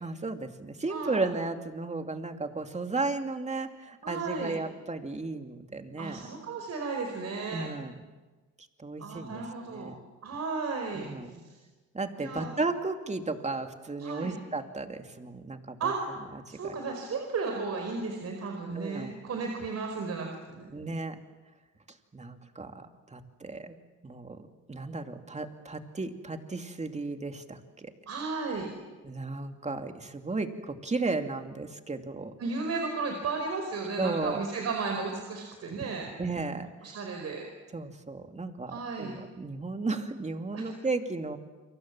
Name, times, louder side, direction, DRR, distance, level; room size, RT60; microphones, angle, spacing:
voice 1, 0.0-6.3 7.5-7.9 8.8-9.4 9.7-10.0 10.9-11.3 11.9-15.9 16.5-16.8 18.7-19.1 20.7-21.2 22.1-23.7 24.0-24.4 24.7-27.9 29.0-32.3 34.0-34.4 36.2-36.7 37.7-41.4, right 3 dB, 20° right, 6 dB, 2.6 m, -34 dB
voice 2, 0.9-1.3 4.0-4.6 6.0-7.7 9.0-9.9 10.2-11.1 11.5-11.6 12.2-12.5 14.0-14.3 15.8-20.7 28.1-28.7 32.4-36.1 36.8-37.5 38.7-39.2 40.5-40.7, right 4 dB, 55° right, 3 dB, 4.8 m, -34 dB
30.0 x 24.0 x 7.5 m, 1.3 s
cardioid pair, 90°, 30 cm